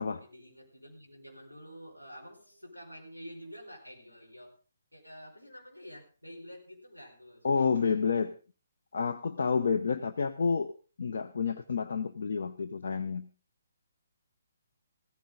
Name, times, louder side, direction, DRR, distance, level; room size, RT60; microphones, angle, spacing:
voice 1, 0.2-4.6 4.9-8.0, equal, 85° left, 0 dB, 5.0 m, -49 dB
voice 2, 7.4-8.4 8.9-10.7 11.0-13.3, left 5 dB, 55° left, 9 dB, 0.7 m, -29 dB
16.0 x 14.0 x 3.7 m, 0.34 s
figure-of-eight pair, 135°, 0 cm